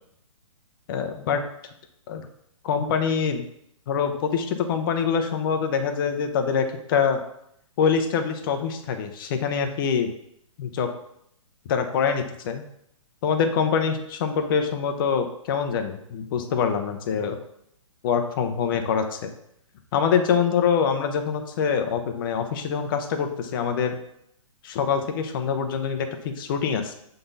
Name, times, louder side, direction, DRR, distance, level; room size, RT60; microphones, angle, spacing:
voice 1, 0.9-1.4 2.1-2.3 2.6-3.4 3.9-7.2 7.8-10.1 10.6-10.9 11.7-12.6 13.2-17.4 18.0-19.3 19.9-24.0 24.6-26.9, left 6 dB, 40° left, 6 dB, 0.7 m, -25 dB
6.8 x 3.9 x 3.9 m, 0.73 s
hypercardioid pair, 145°, 18 cm